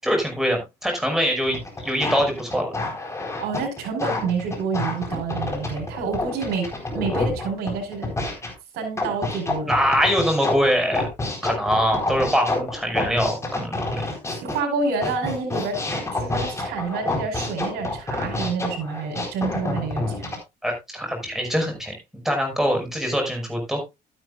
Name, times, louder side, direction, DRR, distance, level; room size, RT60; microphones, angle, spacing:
voice 1, 0.0-2.7 6.9-7.0 9.7-11.1 11.4-14.0 20.6-21.9 22.2-23.8, equal, ahead, 5.5 m, -23 dB
sound 1, 1.4-8.5 9.0-14.6 15.0-20.4, left 2 dB, 15° left, 4.0 m, -28 dB
voice 2, 3.4-8.1 8.7-9.7 14.4-15.8 16.1-20.4, right 4 dB, 70° right, 4.9 m, -28 dB
12.0 x 11.0 x 2.4 m
cardioid pair, 110°, 17 cm